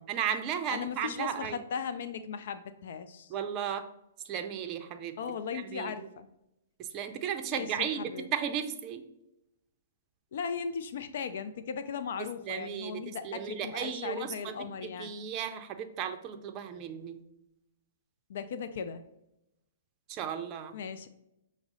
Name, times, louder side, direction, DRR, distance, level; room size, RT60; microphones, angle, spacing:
voice 1, 0.1-1.6 3.3-3.9 4.2-5.2 5.7-6.1 6.8-9.0 12.4-17.2 20.1-20.8, right 8 dB, 35° right, 7 dB, 0.5 m, -35 dB
voice 2, 0.7-3.3 5.2-6.3 7.5-8.3 10.3-15.2 18.3-19.0 20.7-21.1, left 6 dB, 65° left, 11 dB, 0.3 m, -37 dB
5.9 x 2.0 x 3.9 m, 0.86 s
hypercardioid pair, 125°, 0 cm